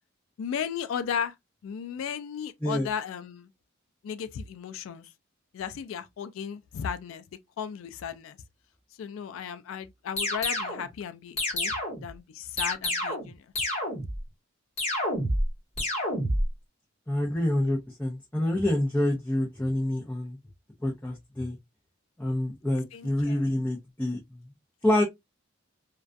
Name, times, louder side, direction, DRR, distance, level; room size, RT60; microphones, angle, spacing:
voice 1, 0.4-1.3 1.6-3.5 4.0-5.1 5.5-7.2 7.6-8.4 9.0-11.7 12.0-13.7 22.9-23.4, left 7 dB, 75° left, 0.3 m, -35 dB
sound 1, 10.2-10.8 11.4-12.1 12.6-13.3 13.6-14.2 14.8-15.5 15.8-16.5, left 1 dB, 35° left, 1.1 m, -28 dB
voice 2, 17.1-20.4 20.8-21.6 22.2-24.5 24.8-25.0, left 1 dB, 10° left, 0.5 m, -27 dB
2.3 x 2.2 x 2.5 m
head